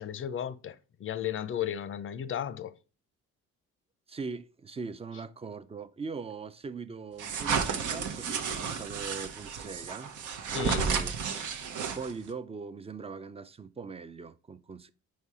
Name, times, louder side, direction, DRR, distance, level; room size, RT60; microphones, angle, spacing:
voice 1, 0.0-2.8 10.5-10.9, left 9 dB, 45° left, 0.5 m, -34 dB
voice 2, 4.1-10.1 10.4-11.2 11.9-14.9, right 4 dB, 20° right, 0.4 m, -40 dB
sound 1, 7.2-12.3, right 6 dB, 80° right, 0.8 m, -32 dB
4.7 x 4.2 x 4.8 m
cardioid pair, 90°, 30 cm